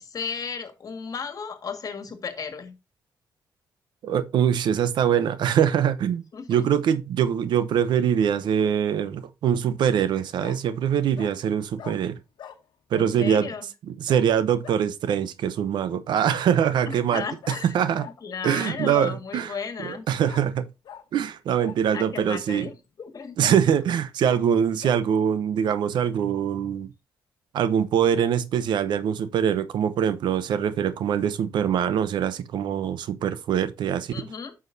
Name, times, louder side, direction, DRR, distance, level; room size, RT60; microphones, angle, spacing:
voice 1, 0.0-2.8 6.3-6.7 12.9-13.7 16.9-17.7 18.2-20.1 21.9-23.4 34.1-34.5, left 6 dB, 50° left, 1.8 m, -34 dB
voice 2, 4.0-12.2 12.9-13.5 13.9-17.2 17.6-18.0 18.4-19.5 19.8-20.7 21.1-22.7 23.4-26.9 27.5-34.1, right 8 dB, 80° right, 0.7 m, -23 dB
Bark, 8.7-9.1 10.4-10.6 11.2-11.3 11.8-12.0 12.4-12.6 14.1-14.3 14.6-14.8 16.3-16.5 17.4-17.6 18.0-18.1 20.2-20.4 20.8-21.0 21.6-22.2 22.7-22.8 23.4-23.6 24.2-24.4 24.8-25.0, left 9 dB, 75° left, 1.1 m, -42 dB
9.2 x 6.2 x 2.7 m
cardioid pair, 80°, 8 cm